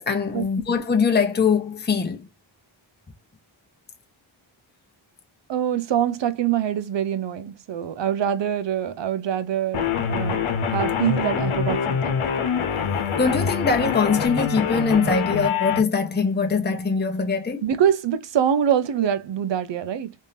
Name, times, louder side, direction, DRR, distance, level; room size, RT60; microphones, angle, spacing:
voice 1, 0.0-2.2 13.2-17.6, left 5 dB, 20° left, 0.9 m, -22 dB
voice 2, 5.5-10.4 10.7-12.2 17.6-20.1, right 9 dB, 65° right, 0.9 m, -24 dB
sound 1, 9.7-15.8, left 6 dB, 90° left, 1.0 m, -25 dB
3.5 x 3.2 x 2.7 m
cardioid pair, 75°, 47 cm